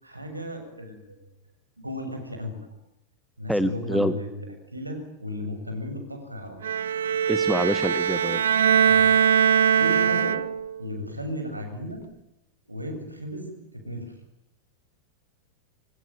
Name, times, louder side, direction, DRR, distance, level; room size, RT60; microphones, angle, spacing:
voice 1, 0.0-1.2 1.8-2.6 3.4-4.5 4.7-6.6 8.8-9.2 9.8-10.4 10.8-12.0 12.7-14.1, left 1 dB, 85° right, 6 dB, 7.4 m, -34 dB
voice 2, 3.5-4.1 7.3-8.4, equal, ahead, 13 dB, 1.5 m, -26 dB
Bowed string instrument, 6.6-10.8, right 8 dB, 65° right, 1.2 m, -21 dB
25.5 x 25.0 x 9.1 m, 0.80 s
figure-of-eight pair, 90°, 0 cm